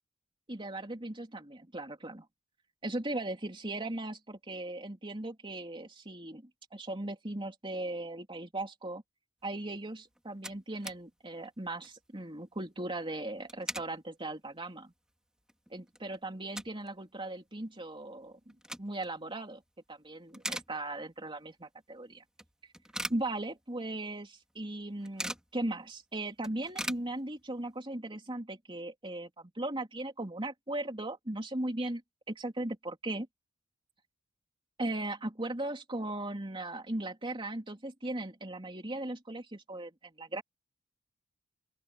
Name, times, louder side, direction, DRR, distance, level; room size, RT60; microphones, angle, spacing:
voice 1, 0.5-2.3 2.8-9.0 9.4-14.9 15.7-19.6 19.9-22.2 23.1-32.0 32.3-33.3 34.8-40.4, right 1 dB, 25° right, 3.1 m, -38 dB
sound 1, 9.8-9.9 10.1-11.0 11.4-11.5 11.7-12.0 13.2-13.9 14.5-14.6 15.1-15.2 15.5-16.9 17.2-17.3 18.3-19.2 19.6-19.9 20.2-21.2 21.6-21.7 22.4-23.9 24.2-24.3 24.5-25.5 25.9-26.0 26.2-27.7, right 1 dB, 5° right, 3.1 m, -41 dB
open air
head